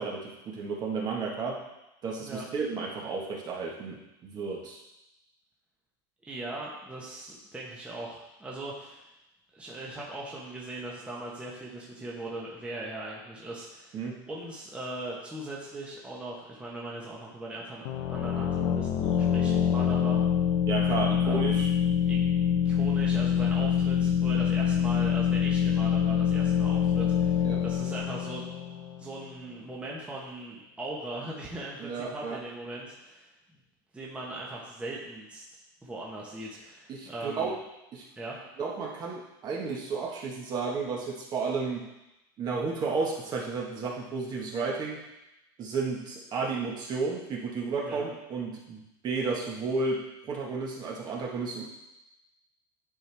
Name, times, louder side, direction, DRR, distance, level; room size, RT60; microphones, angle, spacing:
voice 1, 0.0-1.6 2.0-4.8 13.9-14.2 20.7-21.7 27.4-27.6 31.8-32.4 36.9-37.5 37.9-38.1 38.6-41.8 42.4-45.0 45.6-51.6, right 4 dB, 35° right, -2 dB, 1.5 m, -32 dB
voice 2, 6.2-9.1 9.5-14.0 14.3-20.2 21.2-21.6 22.0-22.2 22.5-28.5 29.0-33.3 33.9-35.4 35.8-37.6 38.2-38.4 47.8-48.1, right 2 dB, 10° right, -4 dB, 1.2 m, -39 dB
sound 1, 17.8-29.4, left 8 dB, 65° left, 0.9 m, -25 dB
10.0 x 4.4 x 3.4 m, 0.92 s
supercardioid pair, 140°, 12 cm